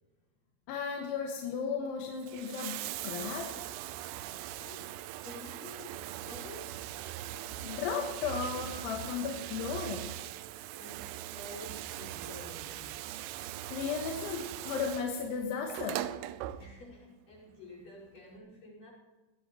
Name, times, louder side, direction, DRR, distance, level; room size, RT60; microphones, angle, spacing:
voice 1, 0.7-2.8 3.0-3.6 7.6-10.1 13.7-16.1, left 6 dB, 75° left, 0 dB, 3.9 m, -35 dB
Bathtub (filling or washing), 2.1-17.1 18.2-18.3, right 13 dB, 90° right, 2.4 m, -41 dB
voice 2, 5.2-6.8 10.8-13.0 16.6-18.9, left 1 dB, 45° left, -4 dB, 6.6 m, -49 dB
22.5 x 17.0 x 3.1 m, 1.2 s
omnidirectional pair, 5.5 m